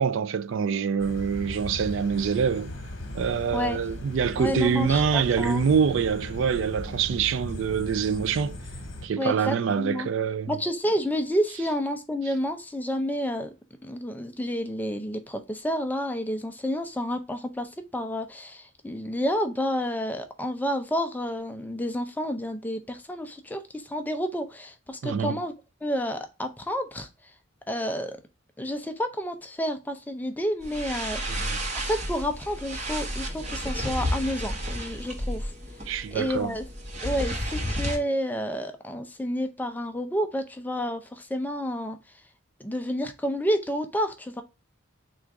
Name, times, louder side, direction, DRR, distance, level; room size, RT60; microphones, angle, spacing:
voice 1, 0.0-2.7 3.1-8.6 9.0-10.5 25.0-25.4 31.3-31.6 35.9-36.5, right 6 dB, 65° right, 0.3 m, -25 dB
sound 1, 1.0-9.1, left 1 dB, 65° left, 1.0 m, -37 dB
voice 2, 4.4-5.6 9.2-10.1 10.5-13.5 13.8-25.5 25.8-27.3 27.7-28.2 28.6-31.4 31.8-35.5 36.1-36.6 37.0-42.2 42.6-44.4, equal, 10° left, 0.4 m, -30 dB
sound 2, 30.6-38.0, equal, 35° right, 0.9 m, -32 dB
3.8 x 2.4 x 4.5 m
head